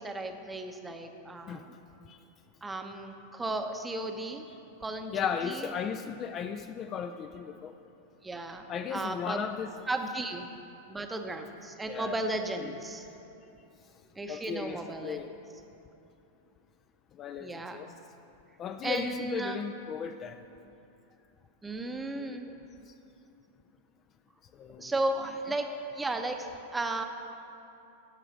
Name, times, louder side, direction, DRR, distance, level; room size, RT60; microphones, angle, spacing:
voice 1, 0.0-1.8 2.6-4.4 4.8-5.7 8.2-8.6 8.9-9.4 9.9-10.5 10.9-13.1 14.2-15.2 17.4-17.8 18.8-19.6 21.6-22.5 24.8-25.7 25.9-27.0, right 2 dB, 10° right, 5 dB, 0.7 m, -35 dB
voice 2, 5.1-7.7 8.7-9.7 11.9-12.2 12.6-12.7 14.3-15.3 17.2-17.9 18.6-20.4 22.1-22.6 24.6-24.9, left 7 dB, 30° left, 8 dB, 0.3 m, -36 dB
12.5 x 4.9 x 5.9 m, 2.8 s
figure-of-eight pair, 90°, 0 cm